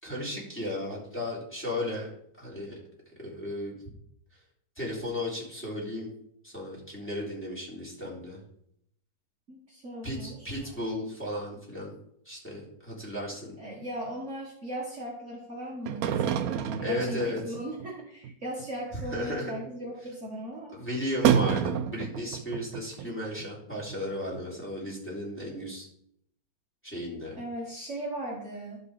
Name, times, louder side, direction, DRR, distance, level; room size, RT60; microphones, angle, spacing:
voice 1, 0.0-2.1 2.4-2.8 3.2-3.7 4.7-6.1 6.4-8.4 10.0-11.9 12.2-13.6 16.8-17.4 19.1-19.5 20.7-25.9 26.8-27.4, left 1 dB, 5° left, -6 dB, 3.5 m, -35 dB
voice 2, 9.5-10.7 13.6-20.8 27.4-28.8, right 1 dB, 40° right, -3 dB, 1.8 m, -38 dB
sound 1, 15.9-17.9 18.2-18.3 18.6-18.7 19.0-19.3 19.6-19.7 21.2-23.1 23.4-23.5 23.9-24.0 24.3-24.4, right 8 dB, 65° right, 0.9 m, -28 dB
12.0 x 5.5 x 4.9 m, 0.71 s
omnidirectional pair, 1.9 m